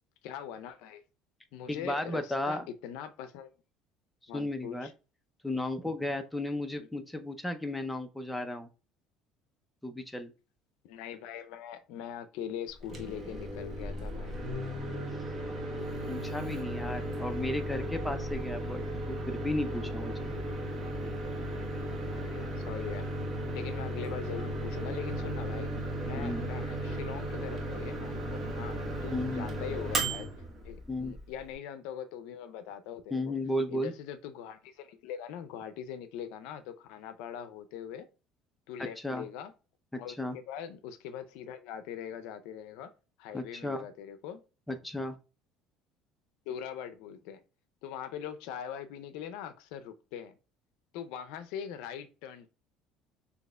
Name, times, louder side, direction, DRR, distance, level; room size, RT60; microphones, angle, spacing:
voice 1, 0.2-1.0 1.5-3.5 4.3-4.9 6.8-6.9 10.8-14.4 22.1-23.1 23.5-25.7 26.0-30.3 30.6-33.4 33.7-38.1 38.7-39.5 40.0-42.9 43.2-44.4 46.5-47.4 47.8-50.3 50.9-52.5, left 9 dB, 80° left, 0.5 m, -42 dB
voice 2, 1.7-2.7 4.2-4.9 5.4-8.7 9.8-10.3 16.1-20.3 26.2-26.4 29.1-29.5 30.9-31.1 33.1-33.9 38.8-39.3 39.9-40.4 43.3-43.9 44.7-45.2, left 1 dB, 5° left, 0.5 m, -34 dB
Microwave oven, 12.7-31.5, right 1 dB, 30° right, 1.1 m, -35 dB
6.3 x 2.9 x 2.2 m
cardioid pair, 125°, 0 cm